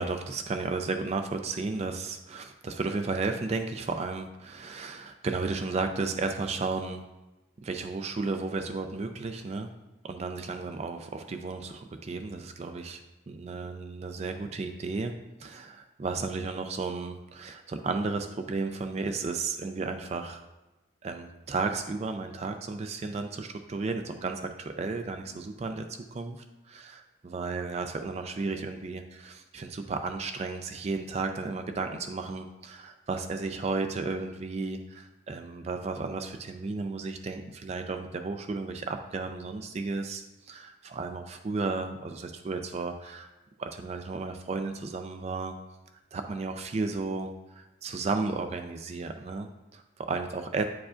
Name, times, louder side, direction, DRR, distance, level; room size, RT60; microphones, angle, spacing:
voice 1, 0.0-7.0 7.6-9.7 10.0-13.0 13.3-15.1 15.4-20.4 21.0-25.9 26.1-26.4 26.7-43.3 43.6-45.5 46.1-50.7, right 3 dB, 30° right, 6 dB, 0.3 m, -33 dB
8.6 x 4.8 x 2.5 m, 1.0 s
head